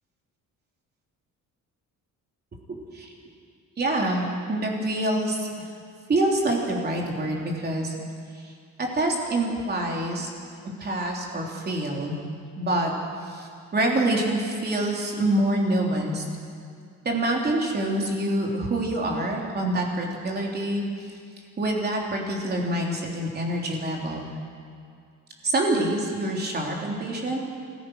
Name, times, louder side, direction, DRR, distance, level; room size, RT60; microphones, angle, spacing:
voice 1, 3.8-5.7 6.1-7.9 8.3-8.5 8.8-10.3 10.8-12.1 12.6-12.9 13.2-16.2 17.1-21.1 21.6-24.3 25.4-27.4, right 1 dB, 30° right, -1 dB, 3.5 m, -26 dB
27.0 x 15.5 x 6.4 m, 2.3 s
cardioid pair, 150°, 33 cm